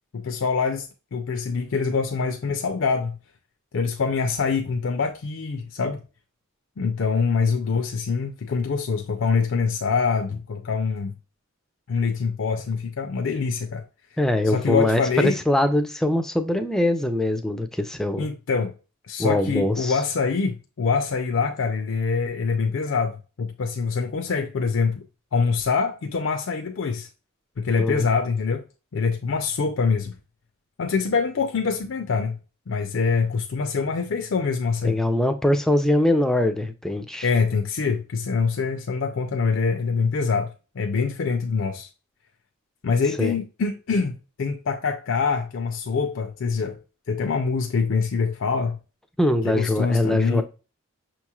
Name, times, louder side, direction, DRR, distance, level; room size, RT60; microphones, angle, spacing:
voice 1, 0.1-3.2 3.7-6.0 6.8-11.1 11.9-13.8 14.4-15.4 18.2-18.7 19.1-25.0 25.3-27.1 27.6-28.6 28.9-30.1 30.8-32.4 32.7-35.0 37.2-41.9 42.8-46.8 47.1-48.8 49.4-50.4, left 5 dB, 60° left, 0.4 m, -24 dB
voice 2, 14.2-18.3 19.2-20.0 27.8-28.1 34.8-37.3 43.2-43.3 49.2-50.4, left 1 dB, ahead, 0.4 m, -22 dB
6.2 x 3.0 x 2.3 m
head